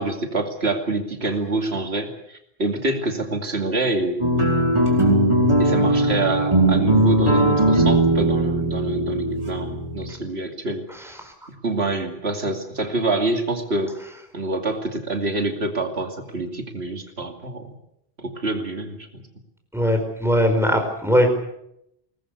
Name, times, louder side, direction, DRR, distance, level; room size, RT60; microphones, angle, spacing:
voice 1, 0.0-4.2 5.6-10.8 11.6-13.9 14.3-17.7 18.2-19.2, right 2 dB, 80° right, 4 dB, 2.8 m, -26 dB
sound 1, 4.2-10.1, right 1 dB, 30° right, 4.9 m, -19 dB
voice 2, 19.7-21.3, equal, ahead, 4 dB, 4.8 m, -19 dB
22.0 x 19.5 x 8.2 m, 0.78 s
omnidirectional pair, 1.1 m